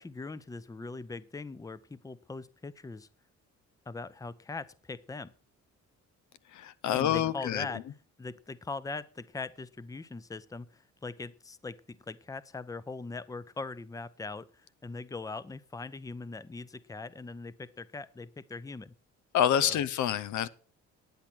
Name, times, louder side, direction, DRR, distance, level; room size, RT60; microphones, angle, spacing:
voice 1, 0.0-3.1 3.9-5.3 6.9-7.8 8.2-14.5 14.8-18.9 19.6-19.8, left 3 dB, 10° left, 17 dB, 0.6 m, -41 dB
voice 2, 6.6-7.7 19.3-20.5, left 10 dB, 75° left, 16 dB, 0.8 m, -27 dB
10.5 x 8.7 x 6.0 m, 0.38 s
cardioid pair, 90°, 30 cm